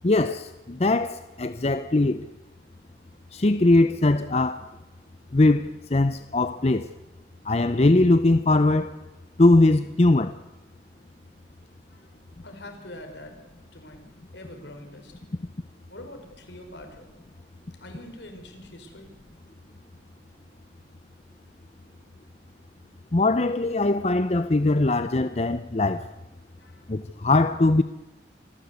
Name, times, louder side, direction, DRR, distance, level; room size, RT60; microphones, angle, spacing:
voice 1, 0.0-2.3 3.3-4.7 5.3-6.9 7.4-9.0 9.4-10.3 23.1-26.1 26.9-27.8, left 2 dB, 35° left, 0.6 m, -21 dB
voice 2, 12.4-13.4 13.7-14.0 14.3-15.1 15.9-17.1 17.8-19.1 26.6-26.9, left 1 dB, 75° left, 4.8 m, -44 dB
26.5 x 15.5 x 8.2 m
head